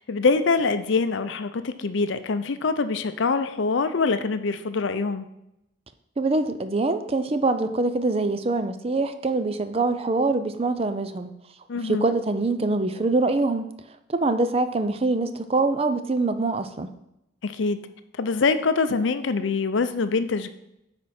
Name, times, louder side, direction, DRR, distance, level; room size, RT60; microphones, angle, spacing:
voice 1, 0.0-5.3 11.7-12.1 17.4-17.8 18.2-20.5, left 4 dB, 65° left, 10 dB, 0.5 m, -24 dB
voice 2, 6.2-11.3 11.8-13.7 14.1-16.9, right 3 dB, 30° right, 10 dB, 0.4 m, -24 dB
9.4 x 4.3 x 4.3 m, 0.85 s
head